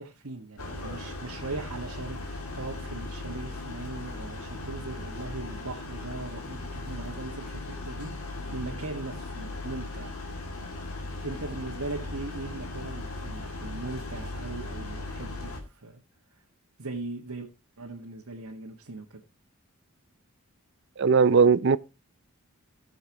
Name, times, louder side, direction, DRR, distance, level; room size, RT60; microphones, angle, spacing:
voice 1, 0.0-10.1 11.2-16.0 16.8-17.5 17.8-19.2, right 3 dB, 80° right, 1.7 m, -39 dB
sound 1, 0.6-15.6, left 2 dB, 75° left, 2.5 m, -38 dB
voice 2, 21.0-21.8, right 5 dB, 55° right, 0.5 m, -19 dB
18.0 x 7.1 x 3.0 m
head